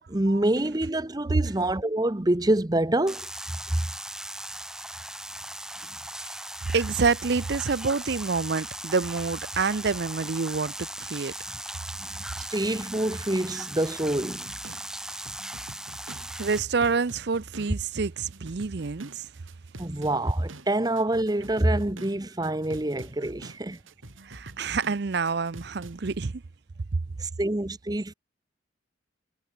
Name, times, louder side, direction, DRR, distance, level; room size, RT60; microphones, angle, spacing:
voice 1, 0.0-3.3 3.7-3.8 12.0-12.1 12.4-14.5 19.8-23.8 27.2-28.1, right 1 dB, 20° right, 0.8 m, -26 dB
sound 1, 3.1-16.6, right 1 dB, 5° right, 3.0 m, -38 dB
voice 2, 6.7-11.3 16.4-19.3 24.2-26.4, right 4 dB, 55° right, 0.6 m, -27 dB
sound 2, 14.3-26.3, right 2 dB, 85° right, 3.4 m, -46 dB
head